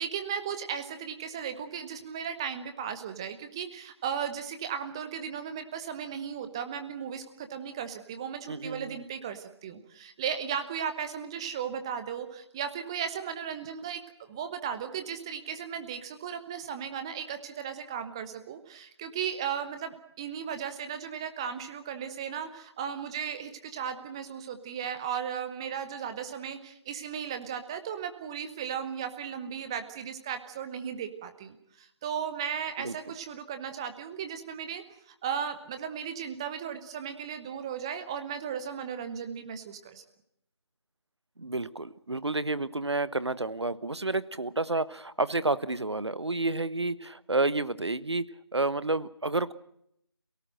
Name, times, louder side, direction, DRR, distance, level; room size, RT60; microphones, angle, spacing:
voice 1, 0.0-14.0 14.3-40.0, right 8 dB, 10° right, 9 dB, 0.9 m, -36 dB
voice 2, 8.5-9.0 32.8-32.9 41.4-48.2 48.5-49.5, right 2 dB, 75° right, 16 dB, 1.3 m, -30 dB
27.0 x 18.0 x 7.7 m, 0.74 s
figure-of-eight pair, 160°, 14 cm